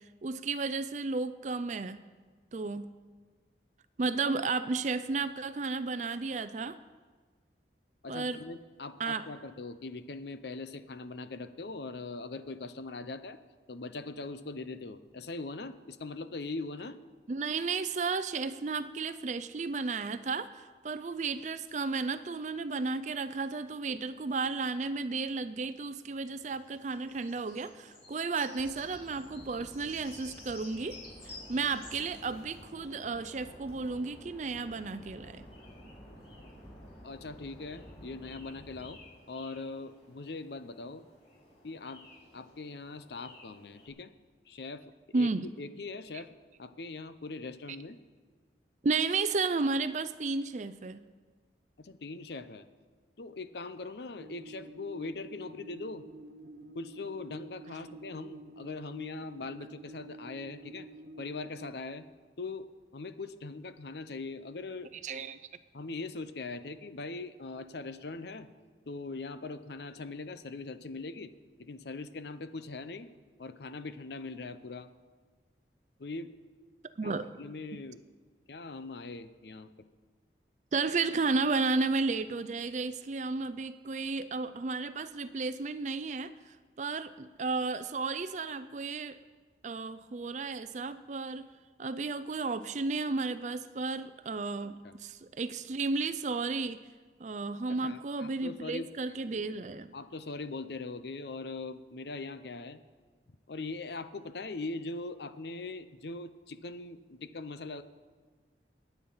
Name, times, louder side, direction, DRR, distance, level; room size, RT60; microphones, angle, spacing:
voice 1, 0.2-2.0 2.5-2.9 4.0-6.8 8.1-8.4 9.0-9.3 17.3-35.4 45.1-45.5 48.8-51.0 65.0-65.4 77.0-77.3 80.7-89.2 89.6-91.5 91.8-96.8 97.2-99.9, right 4 dB, 40° right, 12 dB, 0.4 m, -33 dB
voice 2, 8.0-13.4 13.7-17.0 37.0-39.0 39.3-41.0 41.6-42.0 42.3-44.1 44.5-44.8 45.1-45.3 45.6-46.3 46.6-48.0 51.8-52.7 53.2-56.0 56.7-60.9 61.2-62.0 62.4-62.7 62.9-64.9 65.7-68.5 68.9-71.3 71.6-73.1 73.4-74.9 76.0-76.3 77.0-78.0 78.5-79.7 94.8-95.0 97.7-98.9 99.9-102.8 103.5-107.8, left 3 dB, 65° left, 12 dB, 0.7 m, -41 dB
sound 1, 25.7-43.9, left 2 dB, 35° left, 6.0 m, -54 dB
sound 2, 28.6-38.9, equal, 15° left, 4.7 m, -53 dB
sound 3, 54.2-61.7, right 2 dB, 60° right, 0.8 m, -49 dB
22.0 x 9.2 x 5.6 m, 1.4 s
head